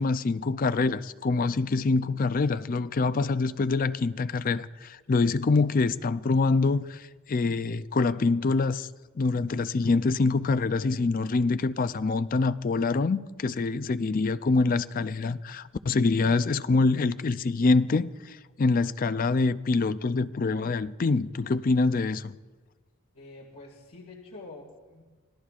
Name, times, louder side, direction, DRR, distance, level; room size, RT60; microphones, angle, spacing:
voice 1, 0.0-8.9 9.2-22.4, left 3 dB, 40° left, 0.4 m, -25 dB
voice 2, 23.1-25.0, left 2 dB, 85° left, 2.0 m, -46 dB
26.0 x 18.5 x 2.5 m
head